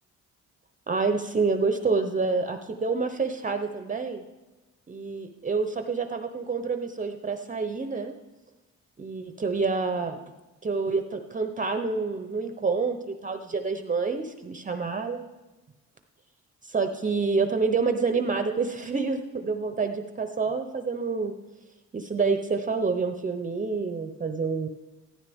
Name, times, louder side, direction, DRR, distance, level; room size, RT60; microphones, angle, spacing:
voice 1, 0.9-4.2 4.9-8.1 9.0-10.2 10.6-15.2 16.6-21.3 21.9-24.7, right 4 dB, 25° right, 7 dB, 0.8 m, -28 dB
15.0 x 13.0 x 3.5 m, 1.1 s
cardioid pair, 90°, 30 cm